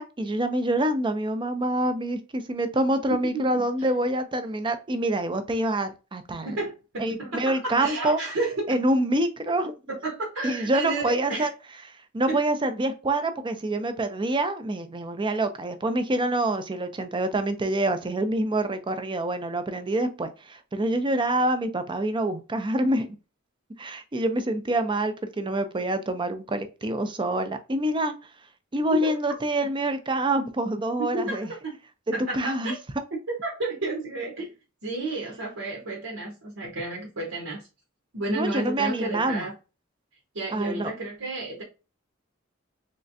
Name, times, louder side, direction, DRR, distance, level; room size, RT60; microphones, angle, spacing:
voice 1, 0.0-6.6 7.0-8.2 8.7-9.7 10.4-11.5 11.9-23.2 23.8-28.2 28.7-31.5 32.3-32.7 38.3-39.5 40.5-40.9, right 1 dB, 25° right, 0.5 m, -26 dB
voice 2, 6.4-8.7 10.0-11.5 12.3-12.4 29.0-29.2 31.1-31.8 32.1-32.8 33.3-34.5 34.8-37.6 38.1-39.5 40.3-41.6, right 2 dB, 80° right, 1.2 m, -31 dB
3.7 x 3.2 x 2.6 m
head